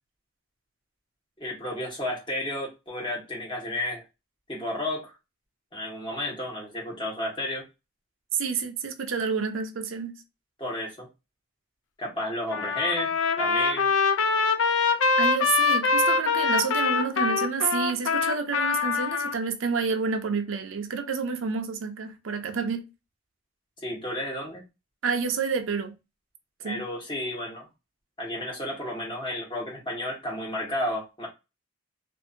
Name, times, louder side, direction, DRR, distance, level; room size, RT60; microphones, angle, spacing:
voice 1, 1.4-4.0 4.5-5.1 5.7-7.6 10.6-11.1 12.0-13.1 13.4-13.9 23.8-24.6 26.6-27.7 28.2-31.3, left 1 dB, 25° left, 1.1 m, -32 dB
voice 2, 8.4-10.2 15.2-22.8 25.0-25.9 26.6-26.8, right 5 dB, 80° right, 0.5 m, -29 dB
Trumpet, 12.5-19.3, left 4 dB, 85° left, 0.4 m, -24 dB
2.7 x 2.5 x 2.5 m
head